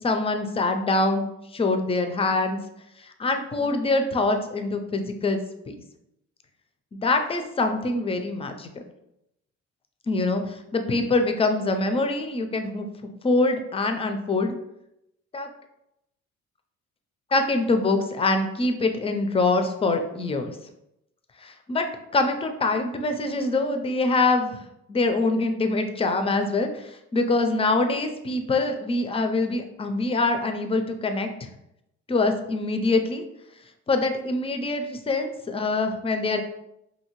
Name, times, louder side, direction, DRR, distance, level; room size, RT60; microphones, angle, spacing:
voice 1, 0.0-2.6 3.0-5.4 5.7-5.8 6.9-8.7 10.1-14.5 15.3-15.5 17.3-20.6 21.4-21.9 22.1-24.6 24.9-31.5 32.1-33.2 33.9-36.4, left 3 dB, 20° left, 6 dB, 0.3 m, -24 dB
2.7 x 2.7 x 2.9 m, 0.84 s
cardioid pair, 90°, 30 cm